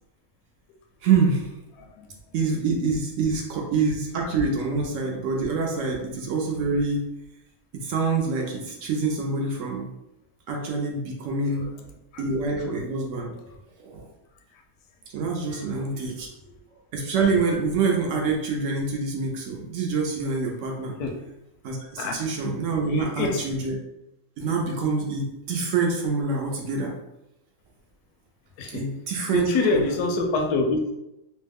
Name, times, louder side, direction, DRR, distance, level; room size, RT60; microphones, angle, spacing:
voice 1, 1.0-1.5 2.3-7.1 7.7-9.9 10.5-11.7 12.2-13.3 13.8-14.1 15.1-16.3 16.9-20.9 21.6-23.7 24.4-26.9 28.7-29.5 29.7-29.9, right 4 dB, 65° right, 0 dB, 0.9 m, -26 dB
voice 2, 1.8-2.1 11.5-11.7 12.1-12.3 13.5-13.6 15.5-15.7 16.4-16.5 21.0-21.2 22.0-22.2 22.9-23.4 28.6-28.8 29.3-30.9, left 3 dB, 90° left, 3 dB, 1.1 m, -26 dB
3.0 x 2.1 x 3.3 m, 0.89 s
omnidirectional pair, 1.6 m